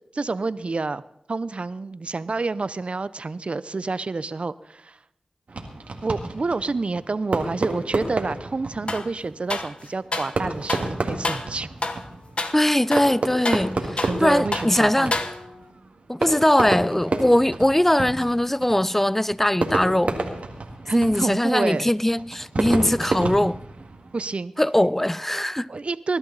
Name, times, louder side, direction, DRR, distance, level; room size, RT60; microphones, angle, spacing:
voice 1, 0.1-1.0 1.3-5.0 6.0-11.7 14.1-15.2 20.8-21.9 24.1-24.5 25.7-26.2, right 3 dB, 60° right, 0.7 m, -28 dB
Fireworks, 5.5-24.3, right 3 dB, 80° right, 1.9 m, -31 dB
sound 1, 8.9-9.1 9.5-10.4 10.7-10.9 11.2-11.5 11.8-12.1 12.4-12.6 12.9-14.2 14.5-14.7 15.1-15.7, left 2 dB, 55° left, 1.3 m, -29 dB
voice 2, 12.5-15.2 16.1-20.2 20.9-23.6 24.6-25.7, left 1 dB, 10° left, 0.5 m, -21 dB
20.5 x 12.0 x 4.1 m
cardioid pair, 40°, 2 cm